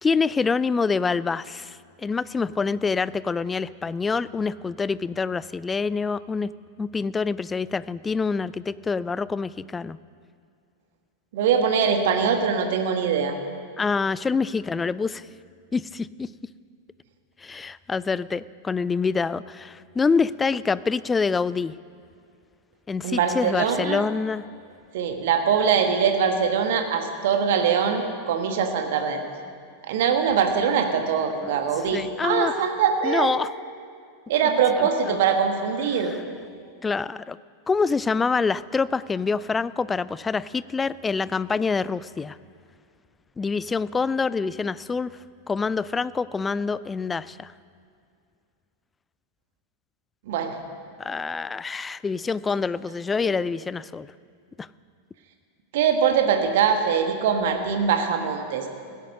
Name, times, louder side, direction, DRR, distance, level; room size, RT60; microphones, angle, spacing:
voice 1, 0.0-6.5 6.8-10.0 13.8-15.2 15.7-16.3 17.4-21.7 22.9-24.4 31.4-31.6 31.9-32.6 33.0-33.5 34.8-35.2 35.9-36.1 36.8-37.4 37.7-42.4 43.4-45.1 45.5-47.5 51.0-54.1 54.6-54.7, left 4 dB, 15° left, 19 dB, 0.3 m, -26 dB
voice 2, 11.3-13.3 23.0-24.0 24.9-29.2 29.9-33.3 34.3-36.1 50.3-50.6 53.2-53.3 55.7-58.7, right 7 dB, 55° right, 5 dB, 1.5 m, -22 dB
16.0 x 10.0 x 6.6 m, 2.3 s
figure-of-eight pair, 90°, 0 cm